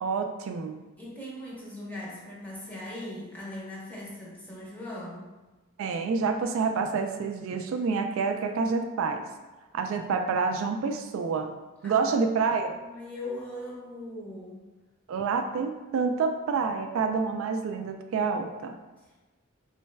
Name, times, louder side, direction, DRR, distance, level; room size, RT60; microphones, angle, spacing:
voice 1, 0.0-0.8 5.8-9.3 9.7-11.6 11.8-12.8 15.1-18.7, right 5 dB, 70° right, 5 dB, 0.3 m, -28 dB
voice 2, 1.0-5.3 11.8-14.7, left 1 dB, 10° left, -6 dB, 0.9 m, -40 dB
4.3 x 3.2 x 2.2 m, 1.2 s
head